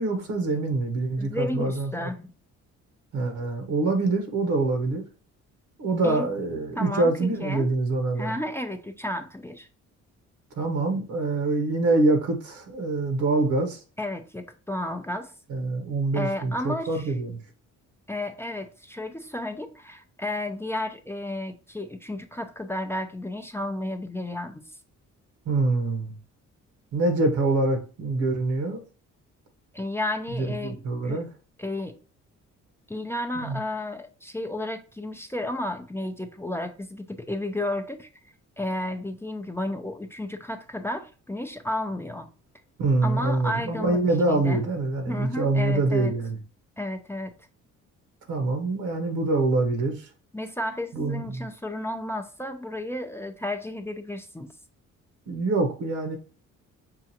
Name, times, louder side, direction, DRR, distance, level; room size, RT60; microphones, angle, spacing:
voice 1, 0.0-2.1 3.1-5.0 5.8-8.4 10.6-13.8 15.5-17.4 25.4-26.2 26.9-28.8 30.3-31.3 33.3-33.6 42.8-46.4 48.3-50.1 50.9-51.5 55.3-56.2, right 2 dB, 75° right, 1.0 m, -25 dB
voice 2, 1.2-2.3 6.0-6.3 6.8-7.7 8.2-9.7 14.0-15.3 16.1-17.1 18.1-24.6 29.7-31.2 31.6-32.0 32.9-38.1 38.6-42.3 43.0-44.6 45.1-46.1 46.8-47.3 50.3-54.5, left 1 dB, 10° left, 0.4 m, -32 dB
5.7 x 2.4 x 2.8 m
cardioid pair, 90°, 30 cm